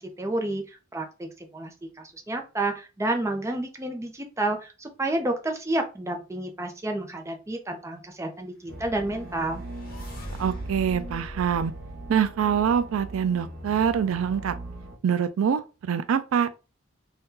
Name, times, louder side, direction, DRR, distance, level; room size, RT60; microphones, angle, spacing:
voice 1, 0.0-9.6, right 2 dB, 15° right, 0.5 m, -30 dB
sound 1, 8.7-15.0, right 2 dB, 60° right, 0.7 m, -40 dB
sound 2, 9.0-13.1, equal, 45° left, 1.0 m, -42 dB
voice 2, 10.4-11.7 12.1-14.5 15.0-16.5, right 7 dB, 80° right, 0.3 m, -25 dB
2.7 x 2.2 x 3.6 m
head